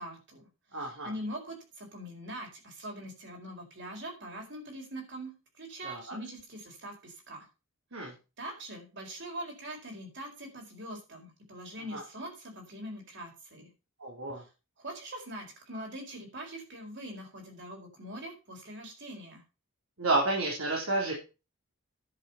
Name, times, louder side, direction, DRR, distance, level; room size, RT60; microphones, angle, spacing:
voice 1, 0.0-7.5 8.0-13.7 14.8-19.4, right 1 dB, 55° right, 1 dB, 4.6 m, -43 dB
voice 2, 0.7-1.1 5.8-6.2 7.9-8.1 11.9-12.0 14.0-14.4 20.0-21.1, right 2 dB, 75° right, -1 dB, 3.5 m, -30 dB
10.5 x 7.1 x 5.6 m, 0.30 s
head